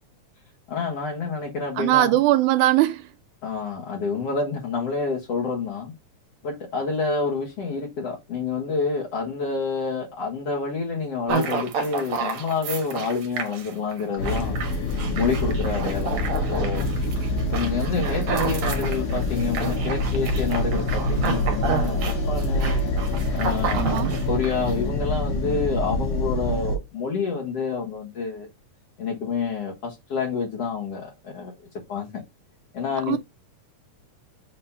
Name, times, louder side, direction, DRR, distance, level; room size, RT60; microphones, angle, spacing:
voice 1, 0.7-2.2 3.4-5.9 6.4-14.6 14.9-16.2 16.5-16.8 17.5-22.0 22.3-22.8 23.3-28.5 29.0-31.5 31.9-32.1 32.7-33.2, left 5 dB, 55° left, 2.5 m, -28 dB
voice 2, 1.8-3.0 23.7-24.1 33.1-33.2, right 15 dB, 85° right, 2.0 m, -20 dB
sound 1, 11.3-24.7, right 5 dB, 65° right, 2.4 m, -30 dB
sound 2, 14.2-26.8, left 1 dB, 90° left, 3.0 m, -26 dB
6.8 x 3.2 x 5.6 m
omnidirectional pair, 3.5 m